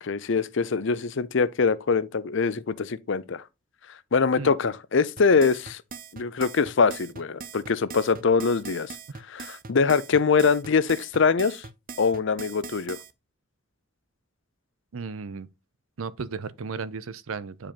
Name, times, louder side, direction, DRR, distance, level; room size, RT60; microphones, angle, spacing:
voice 1, 0.0-3.4 4.1-5.8 6.1-8.9 9.3-11.6 12.0-13.0, left 5 dB, 65° left, 0.6 m, -23 dB
sound 1, 5.2-13.1, right 5 dB, 45° right, 0.6 m, -41 dB
voice 2, 14.9-15.5 16.0-17.7, right 5 dB, 85° right, 0.6 m, -35 dB
8.9 x 5.0 x 2.9 m
head